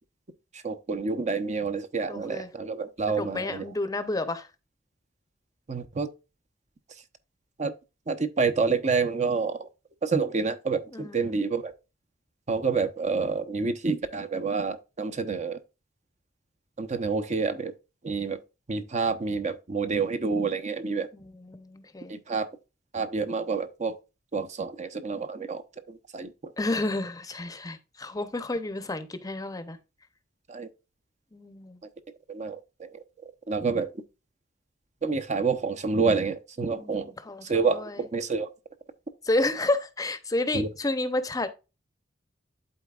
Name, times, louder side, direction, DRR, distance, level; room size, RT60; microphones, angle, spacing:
voice 1, 0.6-3.7 5.7-6.1 7.6-7.7 8.1-9.7 10.0-11.7 12.5-15.6 16.8-17.7 18.0-18.4 18.7-21.1 22.1-22.5 22.9-23.9 24.3-25.6 25.9-26.5 30.5-30.7 32.3-32.9 33.5-33.9 35.0-37.1 37.4-38.5 40.5-40.7, right 4 dB, 40° right, 0.7 m, -28 dB
voice 2, 2.1-2.5 3.2-4.5 10.9-11.4 21.1-22.1 26.6-29.8 31.3-31.8 36.8-38.0 39.2-41.5, left 2 dB, 20° left, 0.7 m, -30 dB
12.0 x 4.0 x 2.3 m
head